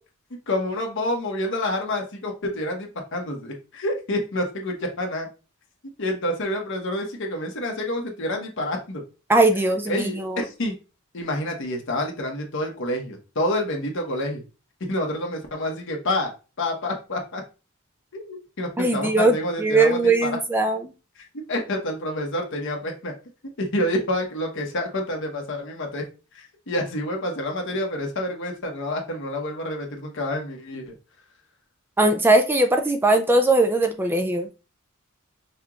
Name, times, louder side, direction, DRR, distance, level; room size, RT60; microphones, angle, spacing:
voice 1, 0.5-5.3 6.0-9.0 9.9-10.7 11.1-14.4 14.9-17.4 18.1-20.4 21.2-23.1 23.6-26.0 26.3-30.9, left 1 dB, 60° left, 2 dB, 1.1 m, -28 dB
voice 2, 9.3-10.4 18.8-20.8 32.0-34.5, right 2 dB, 10° right, 5 dB, 0.3 m, -20 dB
5.5 x 2.9 x 2.4 m, 0.31 s
head